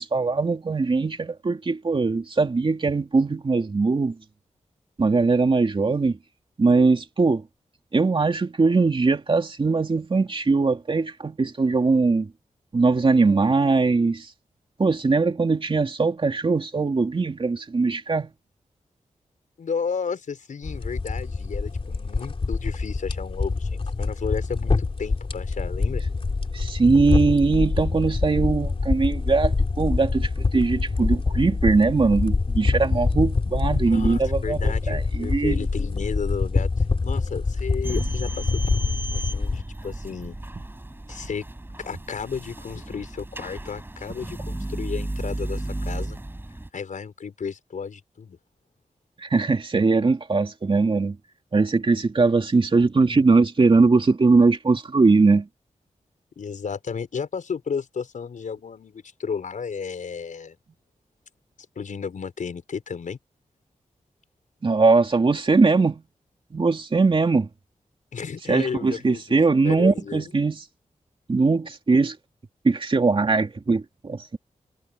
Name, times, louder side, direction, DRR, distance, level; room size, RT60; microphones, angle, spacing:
voice 1, 0.0-4.2 5.0-6.2 6.6-7.4 7.9-12.3 12.7-14.3 14.8-18.3 26.5-35.6 49.2-51.2 51.5-55.5 64.6-66.0 66.5-67.5 68.5-70.6 71.3-72.2 72.6-74.4, right 4 dB, 40° right, 2.8 m, -21 dB
voice 2, 19.6-26.0 33.8-40.4 41.1-41.4 41.8-46.2 46.7-48.4 56.4-60.6 61.8-63.2 68.1-70.3, left 6 dB, 85° left, 5.2 m, -33 dB
sound 1, 20.6-39.6, left 3 dB, 45° left, 3.5 m, -25 dB
sound 2, 37.8-46.7, right 1 dB, 15° right, 6.7 m, -34 dB
wide cardioid pair, 95°, 13 cm